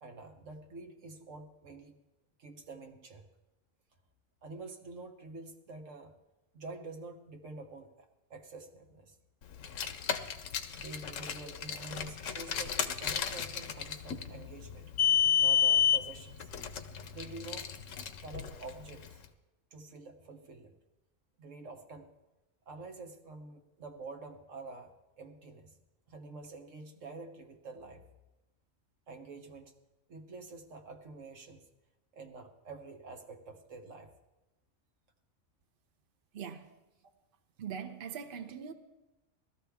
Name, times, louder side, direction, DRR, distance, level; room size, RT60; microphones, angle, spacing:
voice 1, 0.0-2.0 2.4-3.3 4.4-6.1 6.5-9.2 10.8-14.9 15.4-16.5 17.1-17.7 18.2-19.2 19.7-20.8 21.4-22.1 22.7-24.9 25.2-25.7 26.1-28.0 29.1-29.7 30.1-31.7 32.1-34.1, right 3 dB, 85° right, 1.5 m, -47 dB
Car, 9.6-19.1, left 8 dB, 90° left, 1.2 m, -31 dB
voice 2, 36.3-36.7 37.6-38.7, right 7 dB, 50° right, 0.9 m, -41 dB
18.0 x 13.0 x 3.5 m
omnidirectional pair, 1.3 m